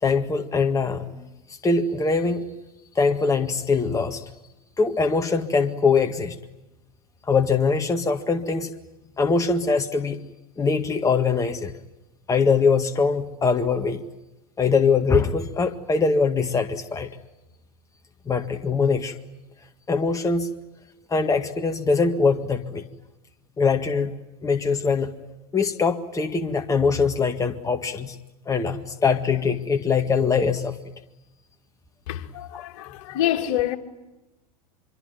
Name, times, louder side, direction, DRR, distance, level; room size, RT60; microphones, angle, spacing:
voice 1, 0.0-1.2 1.6-2.4 3.0-4.2 4.8-6.4 7.3-8.7 9.2-10.2 10.6-11.7 12.3-14.0 14.6-17.1 18.3-19.2 19.9-20.5 21.1-22.8 23.6-24.1 24.4-25.1 25.5-28.2 28.5-30.8, left 4 dB, 15° left, 1.8 m, -22 dB
voice 2, 32.1-33.8, left 12 dB, 55° left, 2.7 m, -26 dB
25.5 x 24.0 x 9.3 m
hypercardioid pair, 90°, 19 cm